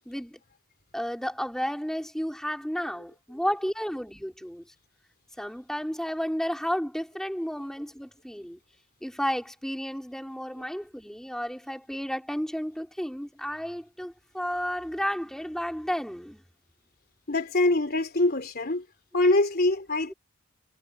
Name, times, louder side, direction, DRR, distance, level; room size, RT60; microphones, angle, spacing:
voice 1, 0.1-0.4 0.9-4.6 5.4-8.6 9.0-16.4, equal, ahead, 4.2 m, -32 dB
voice 2, 17.3-18.8 19.1-20.1, left 2 dB, 45° left, 3.5 m, -24 dB
head